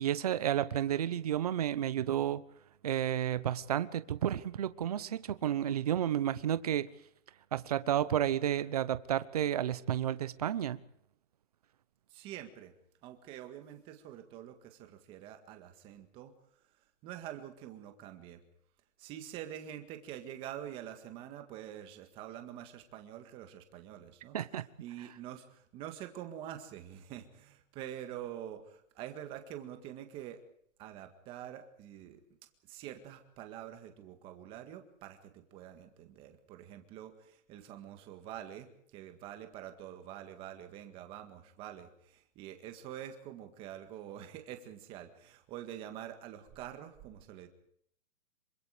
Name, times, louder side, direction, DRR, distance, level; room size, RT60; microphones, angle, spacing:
voice 1, 0.0-2.4 2.8-6.9 7.5-10.8 24.3-24.6, right 10 dB, 30° right, 1.0 m, -31 dB
voice 2, 12.1-12.7 13.0-16.3 16.8-18.4 19.0-24.4 24.8-30.4 30.8-32.2 32.6-47.5, right 11 dB, 15° right, 1.8 m, -46 dB
27.0 x 24.5 x 5.1 m
hypercardioid pair, 175°, 40 cm